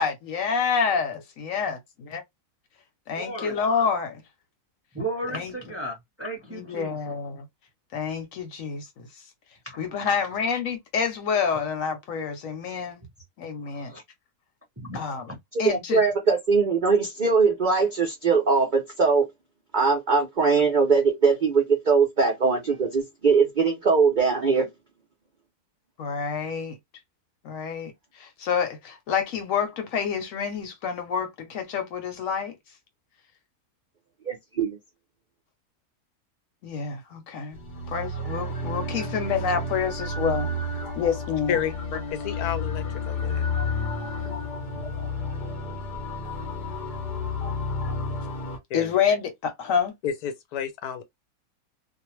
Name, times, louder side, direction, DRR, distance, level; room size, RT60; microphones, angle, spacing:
voice 1, 0.0-1.8 2.1-2.2 3.1-4.2 5.3-5.6 6.5-7.5 7.9-9.1 9.8-13.0 13.4-13.9 14.9-15.3 15.6-16.0 26.0-26.8 27.4-32.5 36.6-37.6 37.9-40.5 40.9-41.6 48.7-49.9, left 6 dB, 65° left, 1.0 m, -28 dB
voice 2, 3.2-3.6 4.9-7.0 9.6-10.1 13.7-14.0 14.8-15.0, right 1 dB, 15° right, 0.6 m, -34 dB
voice 3, 15.6-19.3 19.7-24.7 34.3-34.8, right 5 dB, 60° right, 0.5 m, -21 dB
sound 1, 37.5-48.6, left 2 dB, 50° left, 0.6 m, -31 dB
voice 4, 41.5-41.8 42.1-43.5 48.7-48.9 50.0-51.0, left 8 dB, 80° left, 1.1 m, -30 dB
2.5 x 2.1 x 3.0 m
omnidirectional pair, 1.6 m